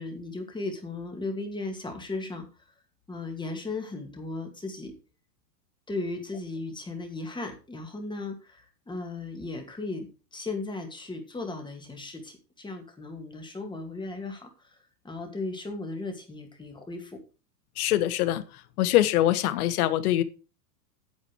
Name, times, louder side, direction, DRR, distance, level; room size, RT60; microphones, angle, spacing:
voice 1, 0.0-2.5 3.1-4.9 5.9-17.2, left 3 dB, 10° left, 4 dB, 2.3 m, -36 dB
voice 2, 17.8-20.2, left 13 dB, 65° left, 14 dB, 1.3 m, -24 dB
8.9 x 7.5 x 4.7 m, 0.32 s
hypercardioid pair, 125°, 48 cm